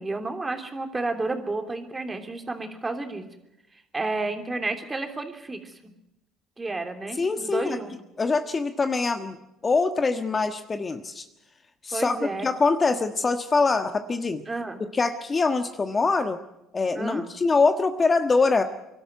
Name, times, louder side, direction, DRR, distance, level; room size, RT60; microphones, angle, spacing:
voice 1, 0.0-3.2 3.9-5.9 6.6-7.9 11.9-12.5 14.5-14.8 16.9-17.3, right 3 dB, 20° right, 6 dB, 3.1 m, -31 dB
voice 2, 7.2-7.8 8.2-9.4 9.6-11.2 11.8-14.4 14.9-16.4 16.7-18.6, left 4 dB, 30° left, 8 dB, 1.4 m, -24 dB
23.5 x 12.5 x 9.5 m, 0.91 s
hypercardioid pair, 65°, 0 cm